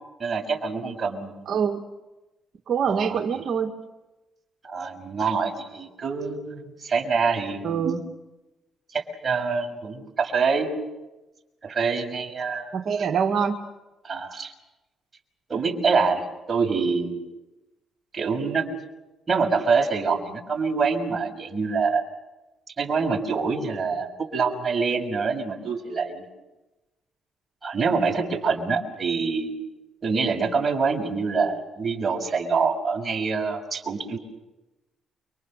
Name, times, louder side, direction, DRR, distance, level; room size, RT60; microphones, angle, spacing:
voice 1, 0.2-1.5 2.8-3.4 4.6-8.0 8.9-10.7 11.6-12.7 14.0-14.5 15.5-17.2 18.1-18.6 19.3-22.0 22.8-26.3 27.6-29.5 30.0-34.2, right 5 dB, 30° right, 2 dB, 6.4 m, -25 dB
voice 2, 1.5-1.8 2.7-3.7 7.6-8.0 12.7-13.6, right 7 dB, 60° right, 1 dB, 1.8 m, -24 dB
30.0 x 24.5 x 6.7 m, 1.1 s
cardioid pair, 90°, 0 cm